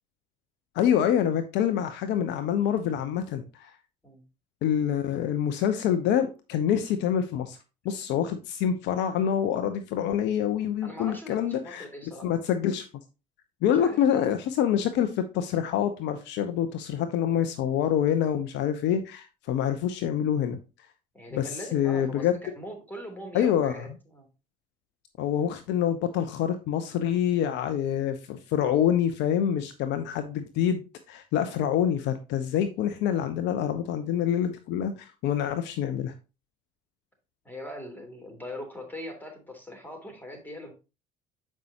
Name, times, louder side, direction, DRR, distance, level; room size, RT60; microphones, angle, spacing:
voice 1, 0.7-3.7 4.6-7.6 7.8-11.8 12.2-12.9 13.6-20.6 21.3-22.3 23.3-23.9 25.2-30.8 31.1-36.1, left 9 dB, 65° left, 0.8 m, -26 dB
voice 2, 10.8-12.3 13.7-14.2 21.1-24.3 37.4-40.7, left 1 dB, 10° left, 3.2 m, -41 dB
7.6 x 5.5 x 2.9 m
hypercardioid pair, 65°, 20 cm